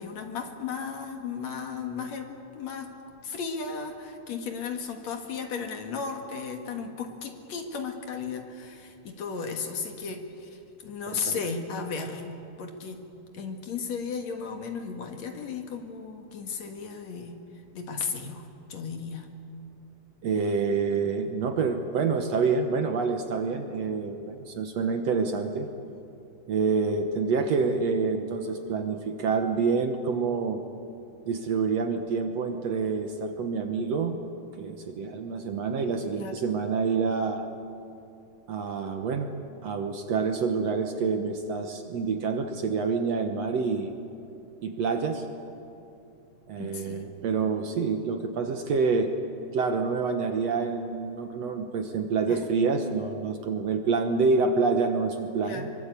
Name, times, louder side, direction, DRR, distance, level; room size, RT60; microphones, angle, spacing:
voice 1, 0.0-2.9 3.2-13.0 13.3-17.4 17.7-19.3 36.1-36.4 46.6-47.1 52.3-52.5 55.4-55.7, left 5 dB, 60° left, 4 dB, 2.7 m, -35 dB
voice 2, 11.1-11.4 20.2-25.7 26.5-30.6 31.2-34.2 34.5-37.4 38.5-39.3 39.6-43.9 44.6-45.3 46.5-49.1 49.5-55.7, right 4 dB, 60° right, 5 dB, 2.0 m, -27 dB
24.0 x 23.5 x 8.3 m, 2.8 s
omnidirectional pair, 3.8 m